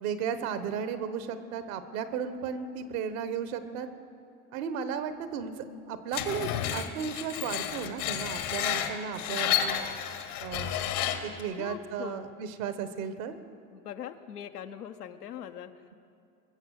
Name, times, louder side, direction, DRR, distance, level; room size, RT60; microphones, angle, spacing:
voice 1, 0.0-3.9 4.5-9.8 10.4-10.8 11.2-13.4, right 7 dB, 65° right, 11 dB, 1.3 m, -35 dB
Screech, 6.1-11.4, left 10 dB, 70° left, 1.4 m, -31 dB
voice 2, 11.6-12.2 13.7-15.9, left 9 dB, 90° left, 8 dB, 0.9 m, -41 dB
22.0 x 7.4 x 6.5 m, 2.4 s
hypercardioid pair, 90°, 45 cm